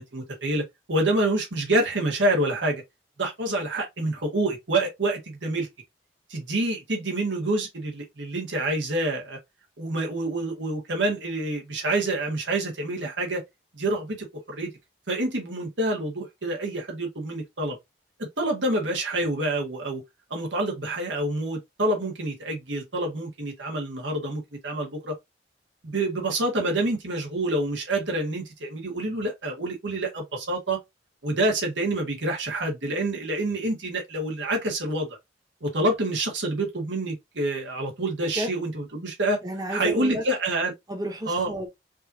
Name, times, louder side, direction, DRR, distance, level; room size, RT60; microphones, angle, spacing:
voice 1, 0.0-2.8 3.2-5.7 6.3-9.4 9.8-13.4 13.7-14.7 15.1-17.8 18.4-20.0 20.3-25.1 25.8-30.8 31.2-35.1 35.6-39.4 39.7-40.7 41.3-41.5, right 2 dB, 85° right, 1.6 m, -27 dB
voice 2, 39.4-40.2 40.9-41.7, equal, 20° right, 0.9 m, -31 dB
5.3 x 2.8 x 2.7 m
head